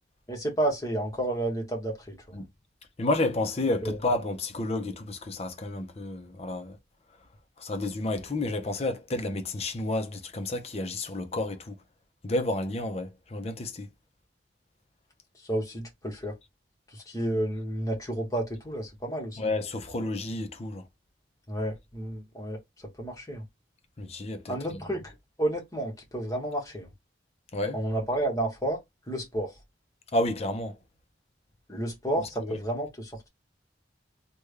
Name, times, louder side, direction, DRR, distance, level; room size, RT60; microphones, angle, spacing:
voice 1, 0.3-2.4 3.8-4.0 15.5-16.3 16.9-19.4 21.5-22.6 23.0-23.4 24.5-26.9 27.7-28.8 29.1-29.5 31.7-33.1, right 1 dB, 20° left, 1.2 m, -31 dB
voice 2, 3.0-6.8 7.6-11.8 12.2-13.9 19.4-20.8 24.0-24.8 27.5-27.8 30.1-30.8 32.4-32.6, left 2 dB, 35° left, 0.6 m, -30 dB
3.4 x 2.3 x 3.2 m
head